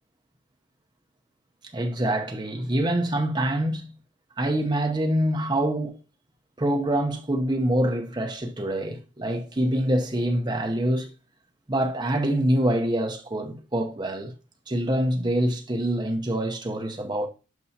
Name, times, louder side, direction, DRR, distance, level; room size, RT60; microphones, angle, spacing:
voice 1, 1.7-3.9 4.4-6.0 6.6-11.1 11.7-14.3 14.7-17.3, right 1 dB, 20° right, 0.7 m, -25 dB
11.0 x 5.5 x 2.7 m
head